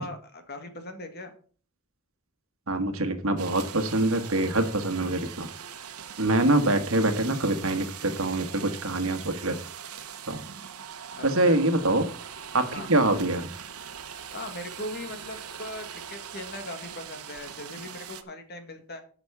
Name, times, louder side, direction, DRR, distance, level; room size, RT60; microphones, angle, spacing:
voice 1, 0.0-1.3 11.1-11.6 12.6-12.9 14.3-19.0, left 1 dB, 45° left, 7 dB, 1.9 m, -39 dB
voice 2, 2.7-5.5 6.2-9.6 10.3-10.4 11.2-12.1 12.5-13.5, right 2 dB, 65° right, 8 dB, 1.4 m, -25 dB
sound 1, 3.4-18.2, right 8 dB, 85° right, 1.1 m, -41 dB
10.5 x 6.1 x 5.9 m, 0.42 s
head